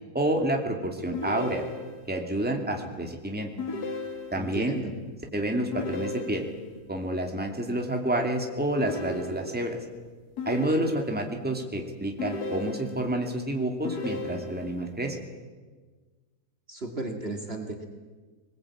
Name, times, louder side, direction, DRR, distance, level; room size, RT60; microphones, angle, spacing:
voice 1, 0.1-1.6 2.1-3.5 4.3-4.8 5.3-6.5 6.9-9.8 10.5-15.2, right 1 dB, 5° right, 2 dB, 2.4 m, -29 dB
sound 1, 1.1-2.2 3.6-4.6 5.7-6.8 8.8-9.8 10.4-11.3 12.2-13.2 13.8-14.9, left 2 dB, 80° left, 2.2 m, -35 dB
voice 2, 4.4-4.9 16.7-17.9, right 2 dB, 40° right, 3 dB, 2.2 m, -34 dB
21.5 x 20.5 x 8.7 m, 1.4 s
omnidirectional pair, 1.7 m